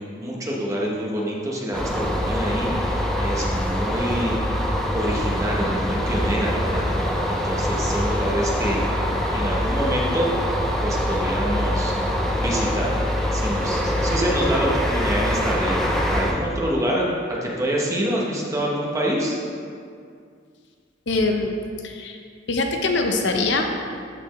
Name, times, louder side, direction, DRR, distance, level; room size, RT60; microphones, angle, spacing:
voice 1, 0.0-4.6 4.9-6.9 7.3-8.9 9.3-10.3 10.8-12.1 12.4-19.3, equal, 15° right, -3 dB, 1.0 m, -26 dB
sound 1, 1.7-16.3, equal, ahead, 0.6 m, -24 dB
voice 2, 21.1-21.6 21.8-22.2 22.5-23.8, left 3 dB, 65° left, 3 dB, 0.7 m, -23 dB
13.0 x 4.4 x 3.1 m, 2.2 s
head